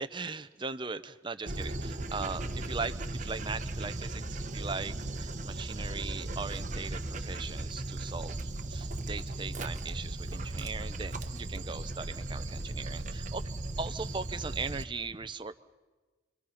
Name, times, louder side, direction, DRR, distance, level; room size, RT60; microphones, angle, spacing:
voice 1, 0.0-8.4 8.7-13.4 13.8-15.5, right 4 dB, 25° right, 11 dB, 0.7 m, -39 dB
Dog, 1.5-14.8, right 2 dB, 40° right, 1.1 m, -37 dB
29.0 x 23.5 x 5.8 m, 1.3 s
head